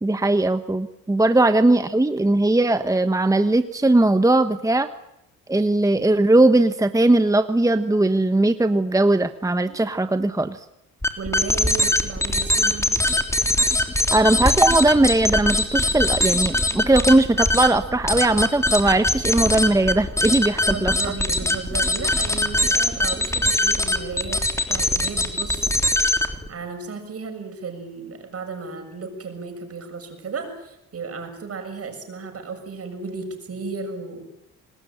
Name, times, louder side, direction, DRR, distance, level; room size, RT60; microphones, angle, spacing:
voice 1, 0.0-4.9 5.5-10.6 14.1-20.9, right 2 dB, 10° right, 10 dB, 1.1 m, -19 dB
sound 1, 11.0-26.5, left 1 dB, 10° left, 3.3 m, -22 dB
voice 2, 11.2-13.0 20.7-34.3, right 4 dB, 45° right, 6 dB, 7.0 m, -34 dB
26.0 x 20.0 x 9.1 m, 0.83 s
cardioid pair, 85°, 33 cm